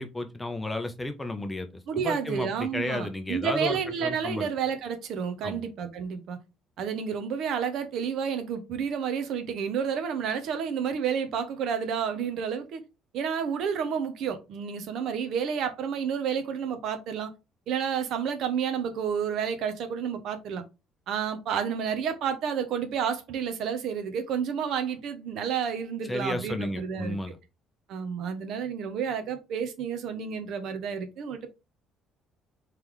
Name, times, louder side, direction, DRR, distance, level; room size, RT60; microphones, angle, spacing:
voice 1, 0.0-1.7 2.0-4.5 5.4-5.6 26.1-27.4, left 1 dB, 10° left, 0.7 m, -33 dB
voice 2, 1.9-6.4 6.8-12.8 13.1-17.3 17.7-20.6 21.1-27.2 27.9-31.5, right 7 dB, 65° right, 0.8 m, -30 dB
3.8 x 3.3 x 3.1 m
cardioid pair, 115°, 0 cm